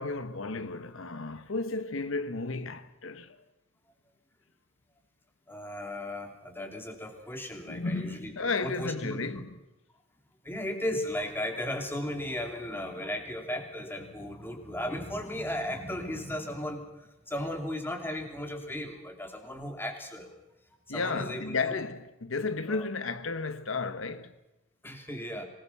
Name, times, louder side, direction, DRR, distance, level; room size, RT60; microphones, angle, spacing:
voice 1, 0.0-3.4 7.7-9.6 20.9-24.4, left 3 dB, 75° left, 1.1 m, -33 dB
voice 2, 5.5-9.2 10.4-20.3 20.9-21.8 22.7-22.9 24.8-25.4, left 1 dB, 10° left, 3.0 m, -36 dB
25.5 x 20.0 x 5.6 m
head